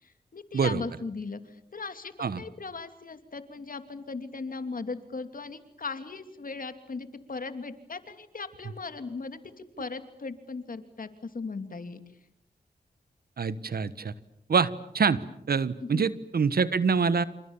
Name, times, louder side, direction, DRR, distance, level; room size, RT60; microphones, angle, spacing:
voice 1, 0.0-12.0 15.9-16.0, left 4 dB, 60° left, 9 dB, 2.8 m, -38 dB
voice 2, 13.4-14.1 14.5-15.2 15.5-17.2, right 5 dB, 70° right, 15 dB, 1.4 m, -25 dB
28.5 x 27.5 x 7.3 m, 0.77 s
cardioid pair, 50°, 16 cm